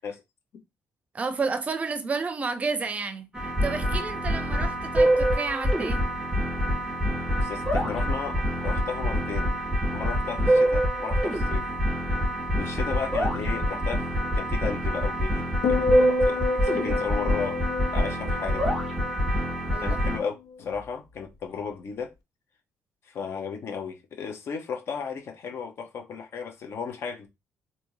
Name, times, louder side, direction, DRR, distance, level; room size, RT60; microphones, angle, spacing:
voice 1, 1.1-6.1 16.8-17.0 19.7-20.0, right 4 dB, 25° right, 0.6 m, -31 dB
sound 1, 3.3-20.2, equal, ahead, 2.2 m, -25 dB
voice 2, 7.3-9.5 9.9-11.7 12.6-14.0 14.3-15.9 16.2-17.5 17.9-18.7 19.7-20.3 20.6-22.1 23.1-27.3, left 6 dB, 55° left, 0.9 m, -34 dB
sound 2, 15.6-20.0 20.3-20.7, left 5 dB, 85° left, 0.6 m, -30 dB
3.4 x 2.8 x 3.1 m
cardioid pair, 130°, 5 cm